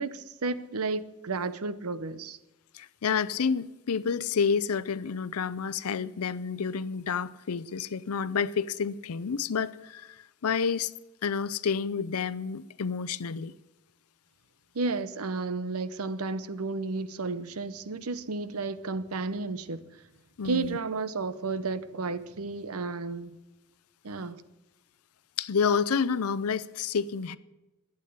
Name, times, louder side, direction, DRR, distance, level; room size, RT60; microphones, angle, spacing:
voice 1, 0.0-2.4 14.7-19.8 20.4-23.4 24.0-24.4, right 3 dB, 75° right, 0.8 m, -32 dB
voice 2, 2.7-10.9 11.2-13.5 20.4-20.8 25.4-27.4, left 6 dB, 80° left, 0.5 m, -29 dB
12.0 x 9.1 x 9.4 m
head